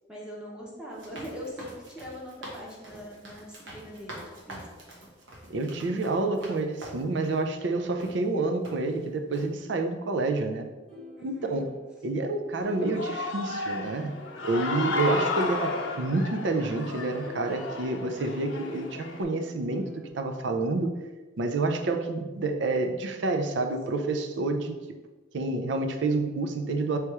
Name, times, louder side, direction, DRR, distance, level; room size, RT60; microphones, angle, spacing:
voice 1, 0.1-4.6 11.2-11.7, equal, 5° right, -4 dB, 0.8 m, -41 dB
sound 1, 0.9-7.4 8.0-8.1 8.6-9.0 9.3-9.5, right 1 dB, 85° right, 1.1 m, -45 dB
voice 2, 5.5-10.7 11.2-11.7 12.0-14.2 14.4-19.8 20.1-20.9 21.4-24.8 25.3-27.0, right 2 dB, 65° right, 5 dB, 0.4 m, -28 dB
sound 2, 10.9-14.7 15.2-20.1, left 1 dB, 25° right, 1.2 m, -48 dB
Human voice / Cheering, 12.6-19.2, left 3 dB, 90° left, 0.6 m, -33 dB
3.3 x 2.9 x 4.6 m, 1.3 s
head